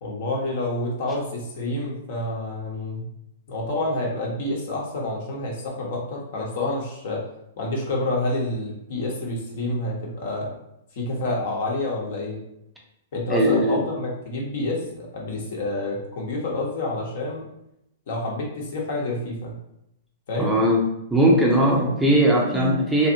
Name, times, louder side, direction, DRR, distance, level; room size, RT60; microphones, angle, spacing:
voice 1, 0.0-3.1 3.5-7.2 7.6-10.6 10.9-12.4 13.1-17.4 18.1-19.6 20.3-20.6 21.7-21.9 22.5-22.7, left 2 dB, 55° left, -2 dB, 0.9 m, -28 dB
voice 2, 13.3-13.8 20.4-20.8 21.1-23.1, right 1 dB, 5° right, -3 dB, 0.5 m, -19 dB
2.6 x 2.5 x 2.6 m, 0.80 s
figure-of-eight pair, 110°, 0 cm